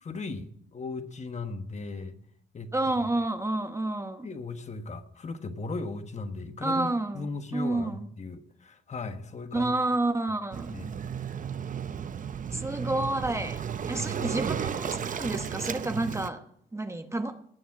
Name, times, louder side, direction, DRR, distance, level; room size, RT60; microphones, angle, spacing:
voice 1, 0.0-2.2 2.5-2.7 4.2-9.7 10.7-10.9 14.2-14.4, left 3 dB, 35° left, 8 dB, 1.4 m, -37 dB
voice 2, 2.7-4.3 6.6-8.1 9.5-10.8 12.5-13.6 13.9-16.4 16.7-17.4, right 2 dB, 15° right, 8 dB, 1.0 m, -29 dB
Waves surf, 10.5-16.3, right 7 dB, 40° right, 0.7 m, -34 dB
19.5 x 7.2 x 6.0 m, 0.66 s
cardioid pair, 90°, 20 cm